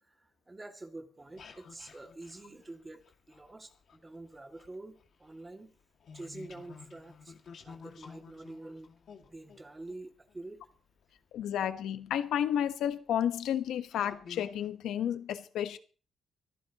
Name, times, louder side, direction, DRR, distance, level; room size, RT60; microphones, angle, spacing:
voice 1, 0.0-5.7 6.1-7.3 7.6-8.9 9.2-10.6, right 2 dB, 20° right, 2.4 m, -47 dB
sound 1, 1.2-4.0 4.3-11.1 12.0-12.1 12.7-12.9 13.4-13.5 13.9-14.7, left 6 dB, 60° left, 2.2 m, -52 dB
voice 2, 11.3-15.8, left 10 dB, 90° left, 1.2 m, -31 dB
24.0 x 15.0 x 3.0 m
cardioid pair, 110°, 0 cm